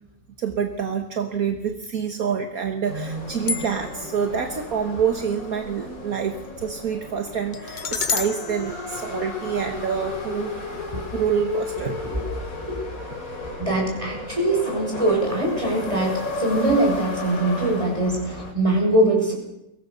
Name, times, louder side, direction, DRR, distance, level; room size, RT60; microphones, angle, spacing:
voice 1, 0.4-10.6 11.1-12.0, right 7 dB, 65° right, 6 dB, 1.8 m, -27 dB
sound 1, 2.8-18.5, left 2 dB, 60° left, 4.1 m, -33 dB
sound 2, 3.5-4.1 7.5-9.8, left 5 dB, 40° left, 0.8 m, -31 dB
voice 2, 11.7-12.2 12.6-12.8 13.4-19.3, right 1 dB, 20° right, 0 dB, 6.7 m, -23 dB
23.0 x 18.0 x 6.7 m, 0.85 s
omnidirectional pair, 1.7 m